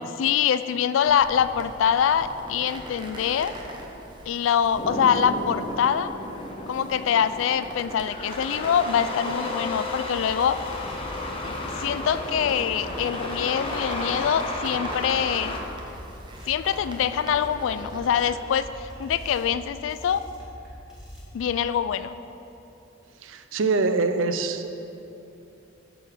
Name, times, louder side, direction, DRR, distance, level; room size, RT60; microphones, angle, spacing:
voice 1, 0.0-3.5 4.3-6.1 6.7-10.6 11.4-15.6 16.5-20.2 21.3-22.2, left 8 dB, 75° left, 13 dB, 0.3 m, -24 dB
sound 1, 1.0-18.3, right 1 dB, 25° right, 0.8 m, -41 dB
sound 2, 4.8-15.6, left 2 dB, 30° left, 0.8 m, -33 dB
sound 3, 9.5-21.6, equal, 5° right, 1.9 m, -43 dB
voice 2, 23.2-24.7, right 3 dB, 75° right, 9 dB, 0.5 m, -24 dB
9.1 x 3.9 x 6.5 m, 2.9 s
head